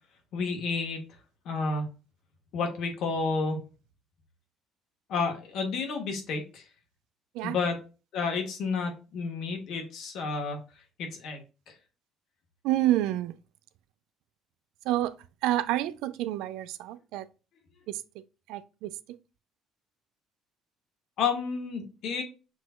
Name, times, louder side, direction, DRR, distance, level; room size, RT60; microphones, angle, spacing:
voice 1, 0.3-1.0 1.4-1.9 2.5-3.6 5.1-6.6 7.4-7.8 8.1-10.6 11.0-11.7 21.2-22.2, left 4 dB, 70° left, 1.4 m, -31 dB
voice 2, 12.6-13.3 14.9-15.1 15.4-17.3 18.5-18.9, right 14 dB, 80° right, 0.4 m, -28 dB
5.9 x 3.1 x 2.3 m
supercardioid pair, 85°, 0 cm